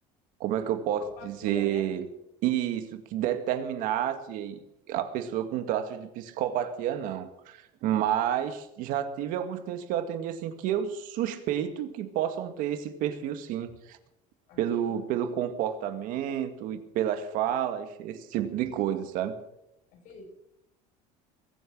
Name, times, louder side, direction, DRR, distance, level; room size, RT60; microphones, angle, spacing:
voice 1, 0.4-2.0 2.4-4.6 4.9-14.0 14.6-19.4, right 10 dB, 60° right, 8 dB, 2.0 m, -30 dB
voice 2, 1.0-1.9 14.5-15.2 19.9-20.4, left 3 dB, 55° left, 1 dB, 7.6 m, -45 dB
22.0 x 9.4 x 6.2 m, 0.83 s
cardioid pair, 150°, 16 cm